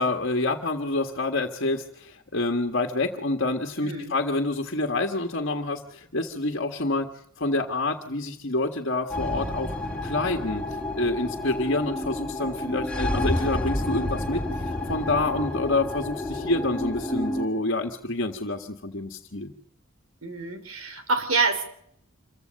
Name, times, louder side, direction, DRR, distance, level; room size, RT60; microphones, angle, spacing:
voice 1, 0.0-7.1 7.4-9.8 10.0-19.5, left 2 dB, 60° left, 4 dB, 1.7 m, -27 dB
voice 2, 3.8-4.1 20.2-21.7, right 4 dB, 85° right, 9 dB, 3.8 m, -27 dB
sound 1, 9.1-17.5, left 1 dB, 5° left, 4.3 m, -30 dB
26.5 x 15.5 x 6.5 m, 0.69 s
head